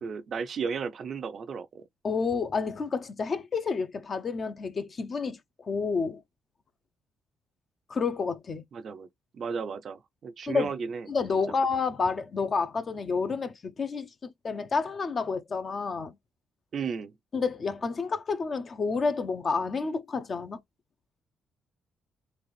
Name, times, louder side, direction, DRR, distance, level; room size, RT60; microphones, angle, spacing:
voice 1, 0.0-1.9 8.7-9.1 9.3-11.1 16.7-17.2, right 6 dB, 55° right, 0.5 m, -34 dB
voice 2, 2.0-6.2 7.9-8.6 10.5-10.7 11.1-16.1 17.3-20.6, left 4 dB, 45° left, 0.6 m, -29 dB
4.0 x 2.5 x 3.1 m
cardioid pair, 90°, 0 cm